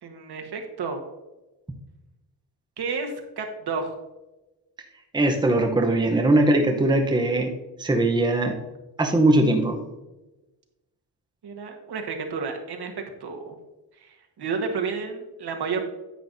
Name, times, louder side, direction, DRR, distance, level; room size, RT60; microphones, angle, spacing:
voice 1, 0.0-1.0 2.8-4.0 11.4-13.5 14.0-15.9, right 5 dB, 70° right, 3 dB, 1.4 m, -31 dB
voice 2, 5.1-7.5 7.8-8.6 9.0-9.8, right 1 dB, 10° right, 3 dB, 0.8 m, -20 dB
9.9 x 8.9 x 2.7 m, 1.1 s
wide cardioid pair, 155°, 41 cm